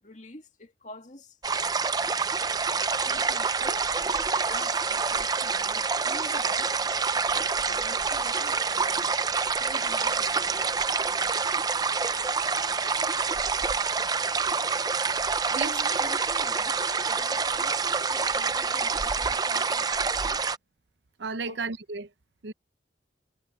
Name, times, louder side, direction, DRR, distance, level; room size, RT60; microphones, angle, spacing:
voice 1, 0.0-1.4 3.1-4.0 4.5-9.1 9.6-10.8 15.5-20.5 21.5-21.7, left 1 dB, 40° left, 2.4 m, -46 dB
sound 1, 1.4-20.6, right 5 dB, 20° right, 0.5 m, -27 dB
voice 2, 21.2-22.1 22.4-22.5, right 4 dB, 75° right, 0.8 m, -33 dB
head